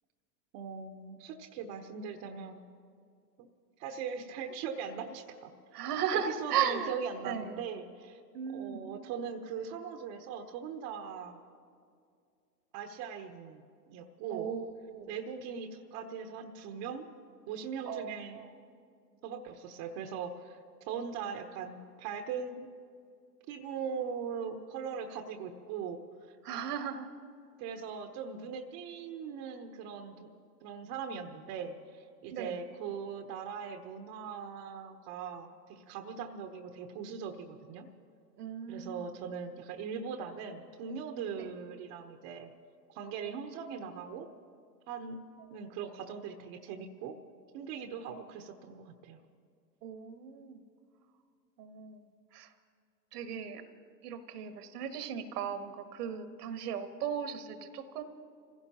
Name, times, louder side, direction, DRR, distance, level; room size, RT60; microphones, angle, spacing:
voice 1, 0.5-2.6 3.4-3.5 3.8-5.5 6.4-8.2 8.5-11.4 12.7-13.6 13.9-14.5 15.1-17.1 17.5-18.4 19.2-20.6 20.9-22.7 23.5-26.0 27.6-30.3 30.6-37.9 38.7-42.5 42.9-44.3 44.9-45.2 45.5-47.2 47.5-49.2, right 6 dB, 40° right, 6 dB, 1.0 m, -40 dB
voice 2, 5.7-7.0 7.2-7.6 8.3-8.8 14.3-15.1 17.9-18.5 26.4-27.1 32.3-32.6 38.4-39.1 41.4-41.5 48.1-48.2 49.8-50.6 51.6-52.1 52.3-52.5 53.1-53.6 54.0-58.0, right 8 dB, 65° right, 9 dB, 1.5 m, -36 dB
27.0 x 16.0 x 3.0 m, 2.3 s
hypercardioid pair, 105°, 50 cm